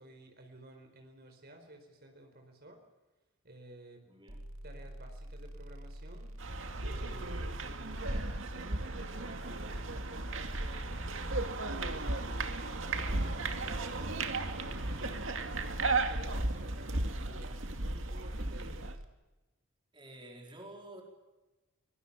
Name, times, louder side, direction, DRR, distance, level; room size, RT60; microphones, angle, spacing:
voice 1, 0.0-2.8 3.4-4.0 4.6-6.3 6.8-11.4 11.8-14.2 14.6-19.0, right 1 dB, 50° right, 4 dB, 4.5 m, -54 dB
voice 2, 4.0-4.4 19.9-21.0, right 1 dB, 25° right, 1 dB, 4.8 m, -50 dB
sound 1, 4.3-19.0, right 1 dB, 80° right, 2.2 m, -46 dB
sound 2, 6.4-18.9, right 2 dB, 65° right, 2.4 m, -35 dB
24.5 x 23.5 x 7.4 m, 1.1 s
head